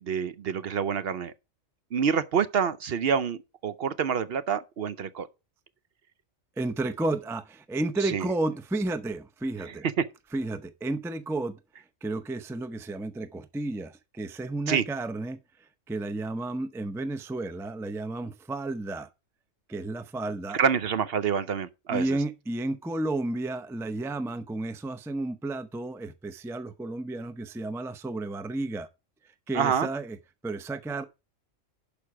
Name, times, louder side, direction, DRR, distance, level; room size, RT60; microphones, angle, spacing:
voice 1, 0.0-1.3 1.9-5.3 8.0-8.3 10.0-10.1 14.7-14.8 20.5-22.0 29.5-29.9, right 7 dB, 60° right, 0.8 m, -27 dB
voice 2, 6.6-9.9 10.3-11.6 12.0-15.4 15.9-19.1 19.7-20.6 21.9-28.9 29.5-30.2 30.4-31.0, right 2 dB, 5° right, 0.4 m, -32 dB
11.5 x 5.2 x 4.7 m
omnidirectional pair, 1.3 m